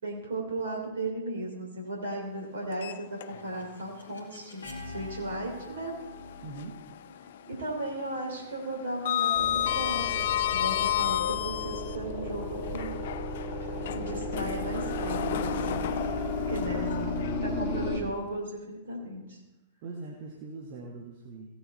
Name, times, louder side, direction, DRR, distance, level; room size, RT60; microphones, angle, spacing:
voice 1, 0.0-6.0 7.5-12.9 13.9-15.9 16.5-19.4, right 1 dB, 60° right, -1 dB, 3.2 m, -36 dB
Sliding door, 2.7-3.7 4.1-4.2 5.9-6.9 7.2-7.6 7.9-12.0 12.6-17.8, left 11 dB, 55° left, 0.3 m, -32 dB
sound 1, 3.2-9.0, left 2 dB, 70° left, 2.2 m, -46 dB
voice 2, 6.4-6.8 16.7-18.2 19.8-21.5, right 4 dB, 45° right, 0 dB, 1.5 m, -42 dB
sound 2, 9.3-18.0, left 2 dB, 35° left, 2.6 m, -33 dB
16.5 x 7.0 x 4.3 m, 1.0 s
figure-of-eight pair, 100°, 0 cm